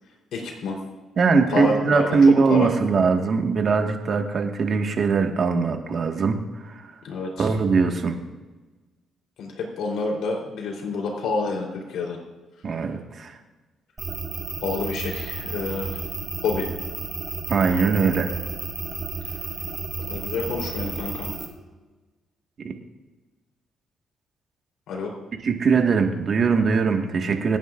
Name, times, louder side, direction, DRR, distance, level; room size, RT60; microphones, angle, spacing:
voice 1, 0.3-0.8 1.5-2.1 2.5-2.7 7.0-7.5 9.4-12.2 14.6-16.0 16.4-16.7 20.0-21.3 24.9-25.1, left 3 dB, 80° left, -1 dB, 3.6 m, -28 dB
voice 2, 1.2-6.9 7.4-8.1 12.6-13.4 17.5-18.3 22.6-22.7 25.4-27.6, right 5 dB, 50° right, 3 dB, 1.6 m, -21 dB
sound 1, 14.0-21.5, right 4 dB, 35° right, 2.9 m, -32 dB
26.0 x 9.7 x 2.5 m, 1.2 s
cardioid pair, 90°, 0 cm